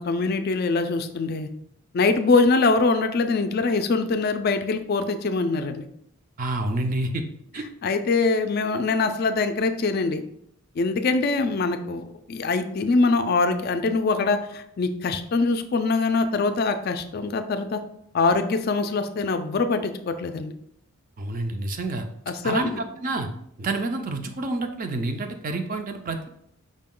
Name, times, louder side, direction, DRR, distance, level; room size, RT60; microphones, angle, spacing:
voice 1, 0.0-1.5 1.9-5.9 7.8-10.2 10.8-17.8 18.1-20.5 22.3-22.8, left 3 dB, 45° left, 8 dB, 0.3 m, -23 dB
voice 2, 6.4-7.2 7.5-7.7 21.2-22.1 22.4-23.3 23.6-26.3, right 2 dB, 35° right, 6 dB, 0.4 m, -28 dB
5.1 x 2.2 x 3.7 m, 0.74 s
head